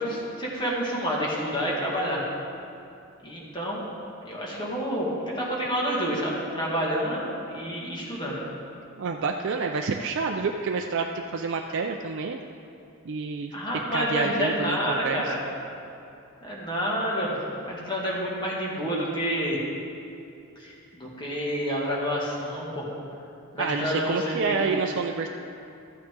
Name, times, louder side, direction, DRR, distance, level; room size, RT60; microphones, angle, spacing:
voice 1, 0.0-2.2 3.2-3.8 4.2-8.4 13.5-15.4 16.4-17.4 17.6-19.6 20.6-22.8 23.5-24.8, equal, 20° left, -5 dB, 1.9 m, -29 dB
voice 2, 9.0-12.4 13.0-15.3 23.6-25.3, right 4 dB, 55° right, 3 dB, 0.4 m, -28 dB
13.0 x 8.8 x 3.7 m, 2.6 s
head